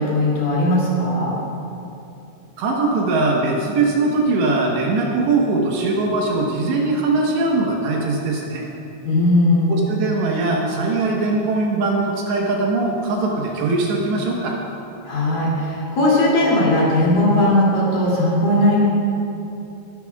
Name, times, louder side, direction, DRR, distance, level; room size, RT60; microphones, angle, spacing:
voice 1, 0.0-1.3 9.0-9.8 15.1-18.8, left 1 dB, 50° left, -6 dB, 3.9 m, -18 dB
voice 2, 2.6-8.7 9.7-14.6, right 3 dB, 70° right, -2 dB, 3.1 m, -21 dB
21.0 x 12.0 x 2.4 m, 2.8 s
omnidirectional pair, 5.6 m